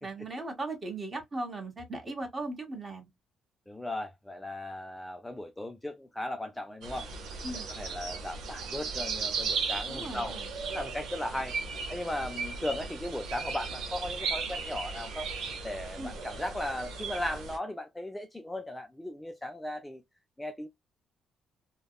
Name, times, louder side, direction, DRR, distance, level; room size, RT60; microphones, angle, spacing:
voice 1, 0.0-3.1 7.4-7.7 9.9-10.4 16.0-16.1, right 2 dB, 30° right, 1.5 m, -38 dB
voice 2, 3.7-7.1 7.5-10.4 10.6-11.6 11.9-15.3 15.6-20.0 20.4-20.7, left 1 dB, 10° left, 0.5 m, -37 dB
sound 1, 6.8-17.6, right 5 dB, 80° right, 0.8 m, -36 dB
3.3 x 2.3 x 2.3 m
cardioid pair, 90°, 0 cm